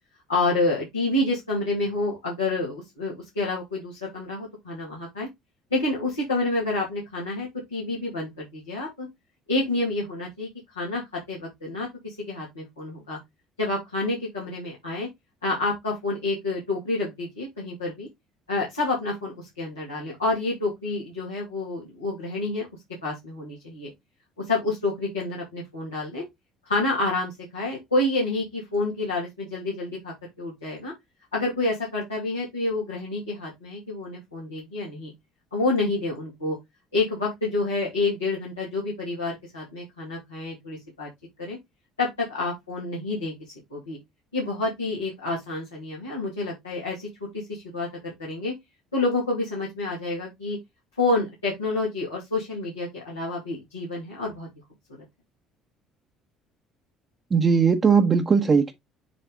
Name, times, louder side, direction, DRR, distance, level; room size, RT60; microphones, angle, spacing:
voice 1, 0.3-5.3 5.7-9.1 9.5-10.5 10.7-13.2 13.6-15.1 15.4-18.1 18.5-22.7 23.0-23.9 24.4-26.2 26.6-30.9 31.3-35.1 35.5-36.6 36.9-41.1 41.4-41.6 42.0-43.3 43.7-44.0 44.3-47.1 47.3-48.5 48.9-50.6 51.0-54.5, left 2 dB, 90° left, 2.5 m, -28 dB
voice 2, 57.3-58.7, right 5 dB, 35° right, 1.2 m, -19 dB
7.6 x 3.3 x 3.9 m
figure-of-eight pair, 55°, 0 cm